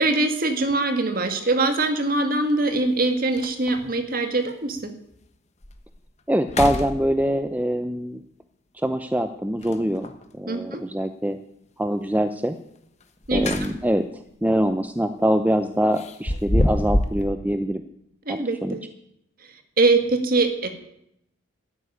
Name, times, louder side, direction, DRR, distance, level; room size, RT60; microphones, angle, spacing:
voice 1, 0.0-4.9 10.5-10.9 13.3-13.5 18.3-18.8 19.8-20.7, right 2 dB, 45° right, 7 dB, 2.0 m, -22 dB
sound 1, 0.6-0.8 2.5-2.6 3.0-3.1 3.3-3.9 4.5-4.6 5.1-5.2 5.6-6.0 6.4-7.5 9.6-10.3 13.0-14.1 14.4-14.7 15.9-17.3, left 1 dB, 35° left, 1.3 m, -27 dB
voice 2, 6.3-8.2 8.7-11.4 11.8-12.6 13.3-17.8 18.3-18.8, equal, 10° right, 8 dB, 0.6 m, -24 dB
13.0 x 9.6 x 10.0 m, 0.76 s
head